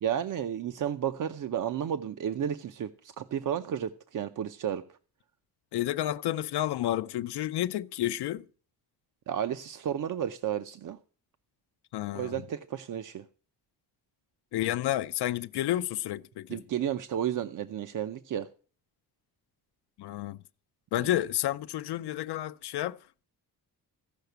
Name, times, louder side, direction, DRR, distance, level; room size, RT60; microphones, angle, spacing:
voice 1, 0.0-4.8 9.3-11.0 12.1-13.3 16.5-18.5, right 9 dB, 55° right, 0.6 m, -32 dB
voice 2, 5.7-8.5 11.9-12.4 14.5-16.6 20.0-20.4 20.9-23.0, left 13 dB, 85° left, 0.6 m, -30 dB
15.0 x 5.8 x 7.9 m
wide cardioid pair, 175°, 39 cm